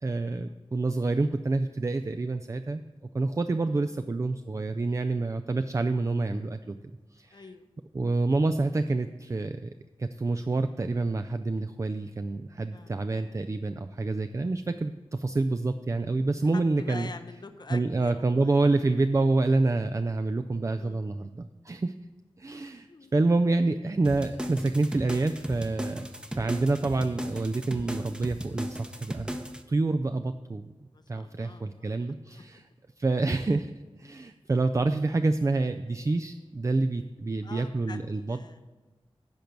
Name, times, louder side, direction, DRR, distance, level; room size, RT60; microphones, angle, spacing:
voice 1, 0.0-2.8 3.1-6.8 7.1-7.4 7.9-9.7 10.0-17.1 17.7-21.9 22.4-22.9 23.1-26.1 26.3-30.7 31.1-32.6 33.0-33.7 34.0-38.4, right 3 dB, 30° right, 9 dB, 0.4 m, -27 dB
voice 2, 3.6-3.9 7.3-7.7 12.7-12.9 16.5-18.6 20.8-21.1 22.9-23.1 26.4-26.6 30.9-32.0 37.4-38.6, left 4 dB, 45° left, 10 dB, 0.6 m, -46 dB
sound 1, 24.0-29.6, equal, 10° right, 0.8 m, -36 dB
10.5 x 4.5 x 6.6 m, 1.3 s
cardioid pair, 50°, 10 cm